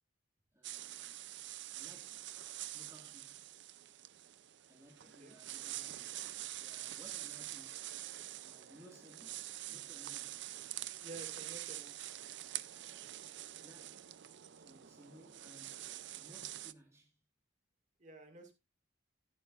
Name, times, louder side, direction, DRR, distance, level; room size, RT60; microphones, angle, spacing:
voice 1, 0.5-1.2 1.7-2.3 2.7-3.4 4.7-6.2 6.5-8.0 8.3-10.4 10.7-10.9 13.5-14.1 14.6-15.9 16.2-17.2, equal, 15° right, 1.8 m, -60 dB
sound 1, 0.6-16.7, right 14 dB, 65° right, 0.5 m, -46 dB
voice 2, 5.0-5.3 11.0-11.9 18.0-18.5, right 2 dB, 40° right, 2.0 m, -51 dB
11.5 x 11.5 x 2.5 m
head